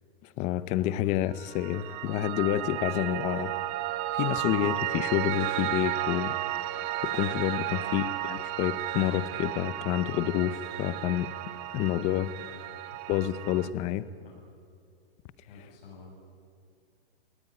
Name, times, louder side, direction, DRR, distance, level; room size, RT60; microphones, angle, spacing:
voice 1, 0.2-3.5 4.1-6.4 6.6-11.3 11.7-12.3 13.1-14.1, left 13 dB, 25° left, 16 dB, 0.6 m, -29 dB
Piano, 1.3-13.7, right 14 dB, 25° right, 0.8 m, -33 dB
voice 2, 15.5-16.1, left 5 dB, 65° left, -1 dB, 7.7 m, -48 dB
20.5 x 18.0 x 9.9 m, 2.2 s
hypercardioid pair, 155°, 30 cm